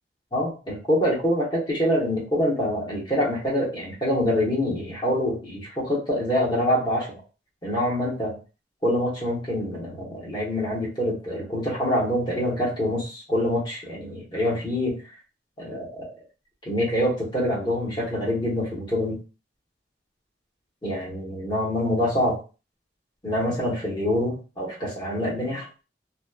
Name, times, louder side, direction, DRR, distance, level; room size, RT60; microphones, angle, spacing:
voice 1, 0.3-7.1 7.6-8.4 8.8-15.0 15.6-16.1 16.7-19.2 20.8-22.4 23.2-25.6, equal, 25° left, -4 dB, 1.0 m, -25 dB
2.9 x 2.2 x 2.3 m, 0.33 s
head